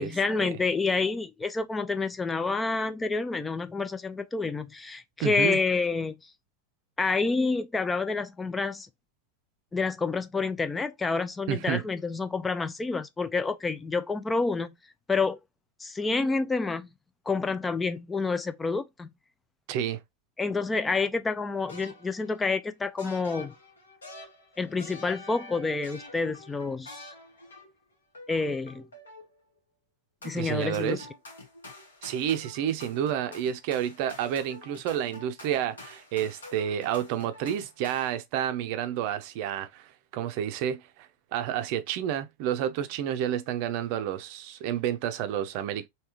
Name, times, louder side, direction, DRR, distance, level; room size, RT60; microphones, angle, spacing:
voice 1, 0.0-6.3 7.0-8.9 9.7-14.7 15.1-15.4 15.8-16.9 17.3-19.1 20.4-23.5 24.6-27.1 28.3-28.8 30.2-31.0, left 4 dB, 15° left, 0.4 m, -28 dB
voice 2, 5.2-5.6 11.5-11.8 19.7-20.0 30.3-31.1 32.0-45.9, right 10 dB, 50° right, 0.5 m, -30 dB
sound 1, 21.6-22.4 23.0-27.8 28.1-29.4 30.2-38.2, left 2 dB, 75° left, 1.4 m, -47 dB
3.4 x 2.8 x 2.9 m
figure-of-eight pair, 90°, 0 cm